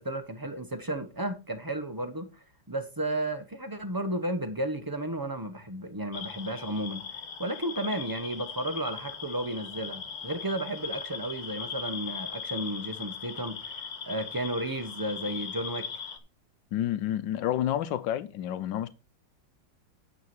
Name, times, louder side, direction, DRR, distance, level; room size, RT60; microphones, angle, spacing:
voice 1, 0.0-15.9, right 1 dB, 20° right, 0.5 m, -33 dB
sound 1, 6.1-16.2, left 6 dB, 55° left, 1.9 m, -39 dB
voice 2, 16.7-18.9, left 11 dB, 85° left, 1.4 m, -29 dB
9.7 x 7.0 x 4.4 m
omnidirectional pair, 2.0 m